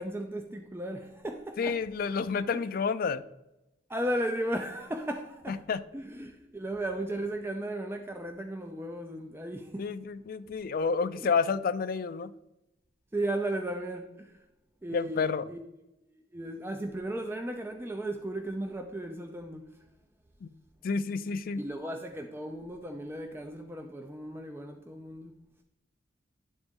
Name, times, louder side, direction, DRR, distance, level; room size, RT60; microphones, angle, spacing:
voice 1, 0.0-1.8 2.5-2.7 3.9-5.6 5.9-9.9 10.8-11.3 13.1-14.4 14.8-15.6 16.1-19.8 21.6-25.4, right 1 dB, 15° right, 0.5 m, -36 dB
voice 2, 1.6-3.2 5.5-5.8 9.8-12.3 14.9-15.4 20.4-20.5 20.8-21.6, left 5 dB, 50° left, 0.4 m, -30 dB
11.0 x 3.9 x 3.6 m
head